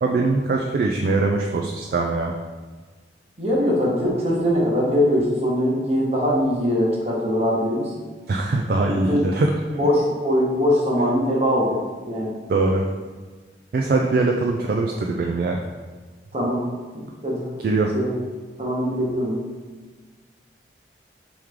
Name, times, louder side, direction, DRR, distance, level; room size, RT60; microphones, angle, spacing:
voice 1, 0.0-2.3 8.3-9.5 12.5-12.9 13.7-15.6 17.6-17.9, right 3 dB, 55° right, 1 dB, 0.3 m, -22 dB
voice 2, 3.4-7.9 9.1-9.2 9.8-11.8 12.0-12.3 16.3-16.6 16.9-17.5 17.9-18.1 18.6-19.4, equal, 35° right, -4 dB, 1.1 m, -21 dB
3.6 x 3.1 x 4.8 m, 1.4 s
head